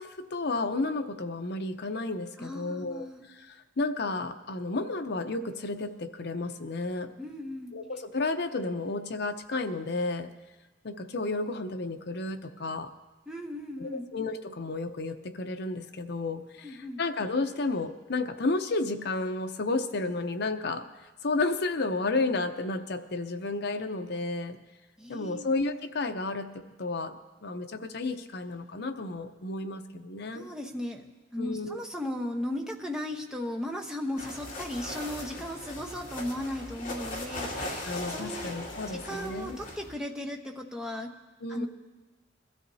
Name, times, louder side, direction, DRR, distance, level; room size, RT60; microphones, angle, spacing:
voice 1, 0.0-3.1 3.3-7.1 7.7-10.3 10.8-12.9 13.8-20.9 21.2-24.6 25.1-30.5 31.4-31.8 37.8-39.6 41.4-41.7, left 3 dB, 60° left, 8 dB, 0.7 m, -32 dB
voice 2, 2.4-3.2 7.2-7.7 13.3-14.1 16.6-17.0 25.0-25.5 30.3-31.0 31.3-38.5 38.9-41.1 41.5-41.7, left 1 dB, 5° right, 1 dB, 1.0 m, -36 dB
sound 1, 34.2-39.9, left 1 dB, 45° left, 2.5 m, -39 dB
22.0 x 13.5 x 2.8 m, 1.2 s
head